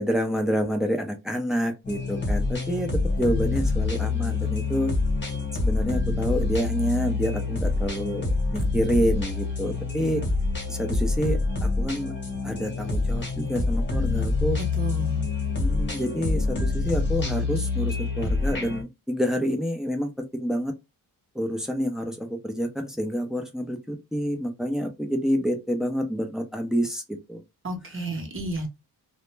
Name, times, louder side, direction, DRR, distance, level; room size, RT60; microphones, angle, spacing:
voice 1, 0.0-4.9 5.5-8.3 8.5-10.2 10.7-12.1 12.4-14.6 15.6-20.7 21.3-27.4, equal, ahead, 0.4 m, -28 dB
sound 1, 1.8-18.8, left 3 dB, 30° left, 1.0 m, -26 dB
voice 2, 14.6-15.3 27.6-28.7, right 2 dB, 30° right, 0.8 m, -31 dB
2.0 x 2.0 x 3.1 m
wide cardioid pair, 125°, 40 cm